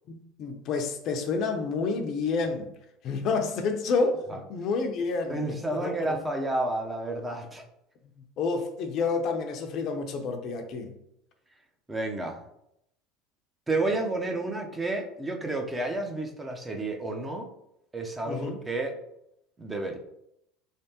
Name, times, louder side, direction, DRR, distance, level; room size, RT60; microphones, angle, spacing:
voice 1, 0.4-2.7 3.0-6.2 8.4-10.9 18.3-18.6, left 4 dB, 55° left, 0.6 m, -29 dB
voice 2, 5.3-7.6 11.9-12.4 13.7-17.5 17.9-18.9 19.6-20.0, right 2 dB, 15° right, 0.7 m, -30 dB
3.5 x 3.4 x 2.9 m
supercardioid pair, 95°, 0 cm